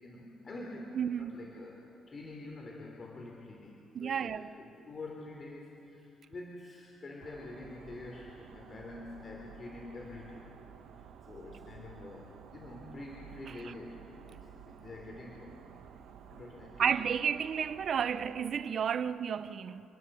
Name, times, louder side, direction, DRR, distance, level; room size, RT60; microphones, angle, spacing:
voice 1, 0.0-10.5 11.0-15.8 16.3-16.9, left 2 dB, 40° left, 3.3 m, -47 dB
voice 2, 1.0-1.4 3.9-4.5 16.8-19.8, right 7 dB, 60° right, 0.7 m, -32 dB
sound 1, 7.2-18.5, right 8 dB, 80° right, 1.4 m, -53 dB
29.0 x 20.5 x 7.9 m
cardioid pair, 90°, 0 cm